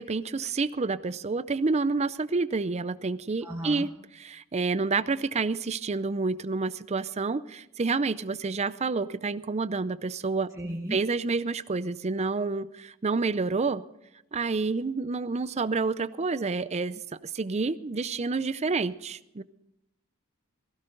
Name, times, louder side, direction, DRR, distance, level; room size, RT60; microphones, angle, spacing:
voice 1, 0.0-10.5 10.9-13.8 14.3-17.0 17.3-19.4, right 4 dB, 30° right, 15 dB, 0.5 m, -29 dB
voice 2, 3.4-3.9 10.5-11.0, equal, 15° right, 0 dB, 1.1 m, -35 dB
19.0 x 16.0 x 3.9 m, 0.90 s
head